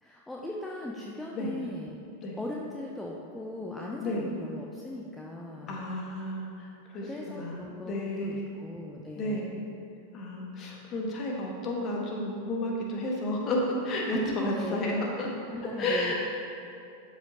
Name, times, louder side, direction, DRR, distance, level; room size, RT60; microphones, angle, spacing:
voice 1, 0.0-2.0 2.4-5.8 6.9-9.6 14.0-15.0 15.5-16.1, left 1 dB, 5° left, -2 dB, 0.6 m, -38 dB
voice 2, 5.7-8.5 9.1-9.4 10.1-15.3 15.8-16.1, left 1 dB, 30° left, -1 dB, 1.3 m, -32 dB
12.0 x 5.2 x 2.8 m, 2.5 s
figure-of-eight pair, 90°, 0 cm